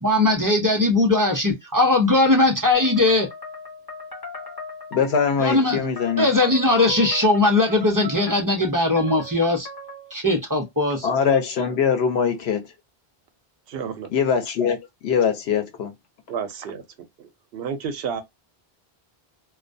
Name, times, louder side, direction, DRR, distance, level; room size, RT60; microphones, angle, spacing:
voice 1, 0.0-3.3 5.4-9.7 10.1-11.1, left 2 dB, 25° right, 0.5 m, -19 dB
sound 1, 2.7-10.1, left 3 dB, 25° left, 0.7 m, -38 dB
voice 2, 4.9-6.3 11.0-12.6 14.1-14.8 15.0-15.9, left 6 dB, 85° left, 0.9 m, -22 dB
voice 3, 13.7-14.1 16.3-16.8 17.2-18.2, right 6 dB, 75° right, 0.8 m, -31 dB
2.3 x 2.1 x 2.5 m
omnidirectional pair, 1.0 m